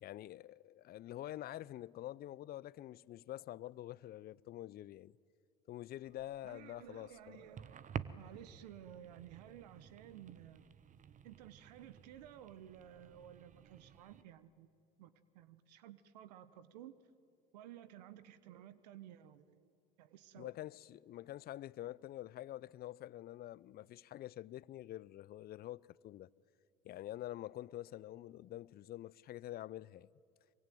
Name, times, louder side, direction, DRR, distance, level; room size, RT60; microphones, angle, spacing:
voice 1, 0.0-5.1 5.7-7.5 20.3-26.3 26.8-30.1, left 14 dB, 50° left, 0.6 m, -47 dB
sound 1, 6.0-14.2, right 8 dB, 40° right, 1.0 m, -51 dB
voice 2, 6.4-10.7 11.2-14.7 15.0-17.0 17.5-19.7 20.0-20.5, right 11 dB, 80° right, 1.0 m, -55 dB
23.5 x 23.5 x 9.3 m
hypercardioid pair, 70°, 21 cm